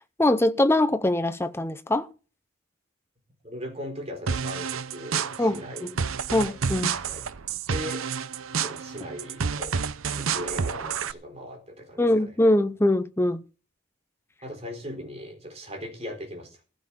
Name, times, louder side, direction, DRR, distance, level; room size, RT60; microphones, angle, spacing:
voice 1, 0.2-2.1 5.4-5.9 6.3-6.9 12.0-13.4, left 1 dB, 10° left, 0.6 m, -22 dB
voice 2, 3.4-5.9 6.4-6.6 6.9-7.2 7.7-8.1 8.6-9.8 10.1-12.3 14.4-16.6, equal, 30° right, 4.1 m, -39 dB
sound 1, 4.3-11.1, right 6 dB, 75° right, 0.7 m, -30 dB
15.5 x 6.7 x 7.1 m
head